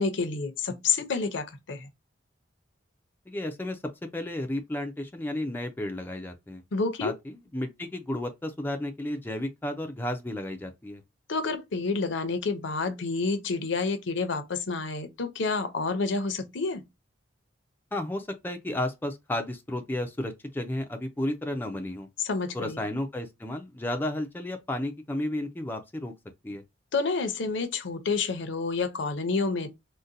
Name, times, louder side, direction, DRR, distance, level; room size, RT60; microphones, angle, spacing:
voice 1, 0.0-1.9 6.7-7.1 11.3-16.8 22.2-22.8 26.9-29.7, left 4 dB, 70° left, 0.6 m, -29 dB
voice 2, 3.3-6.6 7.0-11.0 17.9-22.1 22.5-26.1 26.4-26.6, left 1 dB, 10° left, 0.4 m, -33 dB
3.8 x 2.1 x 2.6 m
head